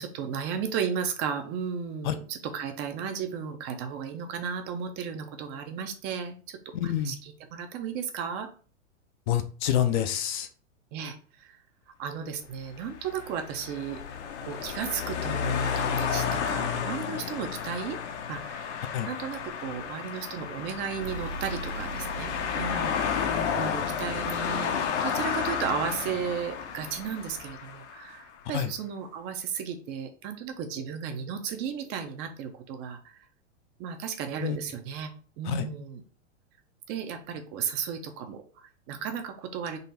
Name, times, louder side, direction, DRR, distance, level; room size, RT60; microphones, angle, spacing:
voice 1, 0.0-8.5 10.9-11.6 12.0-14.0 14.4-18.0 18.3-23.0 23.5-33.2 33.8-35.1 35.4-36.0 36.9-39.8, right 7 dB, 30° right, 6 dB, 0.5 m, -34 dB
voice 2, 6.7-7.1 9.3-10.5 18.9-19.1 28.5-28.7 34.4-34.6 35.5-35.7, left 10 dB, 40° left, 9 dB, 0.5 m, -27 dB
sound 1, 12.7-28.1, left 7 dB, 65° left, 0.8 m, -32 dB
sound 2, 21.0-25.2, right 3 dB, 70° right, 0.9 m, -42 dB
3.9 x 2.4 x 4.1 m, 0.40 s
hypercardioid pair, 135°, 37 cm